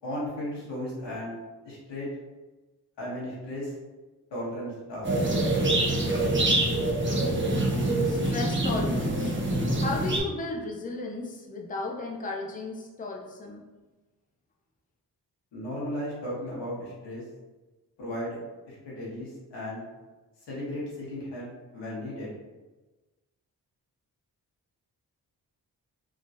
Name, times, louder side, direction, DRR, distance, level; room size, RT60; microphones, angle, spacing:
voice 1, 0.0-1.3 1.6-2.1 3.0-3.7 4.3-5.1 15.5-17.2 18.0-18.4 18.7-19.8 20.5-21.5 21.7-22.3, left 1 dB, 85° left, -6 dB, 1.2 m, -35 dB
sound 1, 5.0-10.2, right 1 dB, 30° right, 0.9 m, -25 dB
voice 2, 8.0-9.4 9.8-13.6, left 2 dB, 20° left, -1 dB, 0.6 m, -34 dB
3.6 x 2.4 x 2.7 m, 1.2 s
supercardioid pair, 40°, 41 cm